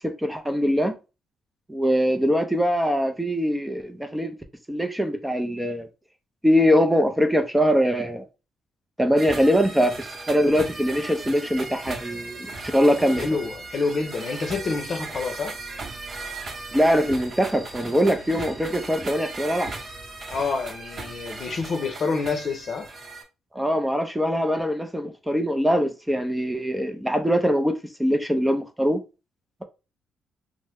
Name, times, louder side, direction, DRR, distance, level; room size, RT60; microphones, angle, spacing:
voice 1, 0.0-1.0 1.7-4.4 4.7-5.9 6.4-8.2 9.0-13.3 16.7-19.7 23.5-29.0, equal, 5° right, 0.5 m, -22 dB
sound 1, 9.2-23.2, right 3 dB, 45° right, 0.9 m, -37 dB
voice 2, 13.2-15.5 20.3-22.9, left 4 dB, 50° left, 0.7 m, -27 dB
3.0 x 2.1 x 3.4 m
cardioid pair, 90°, 0 cm